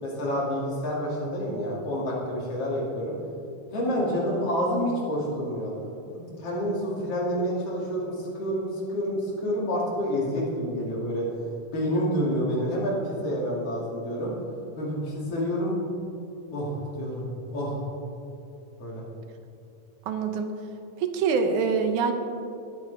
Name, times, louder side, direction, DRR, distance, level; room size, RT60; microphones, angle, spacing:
voice 1, 0.0-3.1 3.7-5.7 6.1-11.3 11.7-14.3 14.8-15.7 16.5-17.2 17.5-17.8 18.8-19.0, equal, 50° left, -4 dB, 3.4 m, -28 dB
voice 2, 20.1-20.5 21.0-22.1, right 5 dB, 80° right, 6 dB, 2.3 m, -25 dB
19.0 x 8.9 x 3.5 m, 2.7 s
omnidirectional pair, 3.5 m